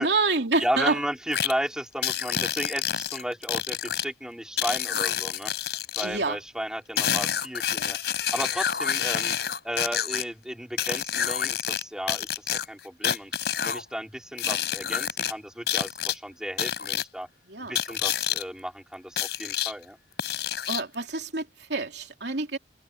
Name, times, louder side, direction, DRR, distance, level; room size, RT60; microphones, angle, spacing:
voice 1, 0.0-1.0 6.0-6.4 17.5-17.8 20.7-22.6, right 3 dB, 75° right, 3.0 m, -27 dB
voice 2, 0.6-5.5 6.0-8.0 8.3-9.4 9.6-13.3 13.6-17.3 17.6-20.0, equal, 5° right, 5.0 m, -34 dB
sound 1, 1.3-1.5 2.0-4.0 4.6-6.1 7.0-10.2 10.8-11.8 12.1-13.8 14.4-15.3 15.7-16.1 16.6-17.0 17.7-18.4 19.2-19.7 20.2-20.9, left 9 dB, 70° left, 4.8 m, -28 dB
head